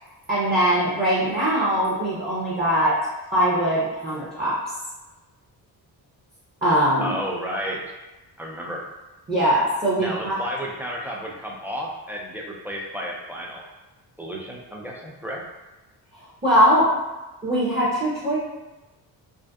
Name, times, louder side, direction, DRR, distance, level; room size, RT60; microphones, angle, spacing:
voice 1, 0.3-3.0 3.3-4.6 6.6-7.2 9.3-10.4 16.4-16.9 17.4-18.4, equal, 20° right, -8 dB, 0.7 m, -21 dB
voice 2, 7.0-7.8 8.4-8.8 10.0-13.7 14.2-15.4, equal, 5° right, -3 dB, 0.3 m, -32 dB
2.6 x 2.1 x 2.3 m, 1.1 s
cardioid pair, 80°, 44 cm